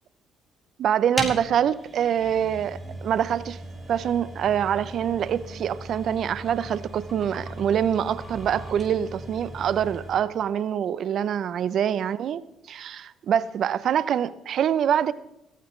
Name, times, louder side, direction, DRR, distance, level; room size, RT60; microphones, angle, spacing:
voice 1, 0.8-3.6 3.9-12.4 12.7-15.1, right 9 dB, 60° right, 0.7 m, -25 dB
sound 1, 1.1-10.3, right 1 dB, 10° right, 6.6 m, -38 dB
17.0 x 16.0 x 3.3 m
supercardioid pair, 65°, 0 cm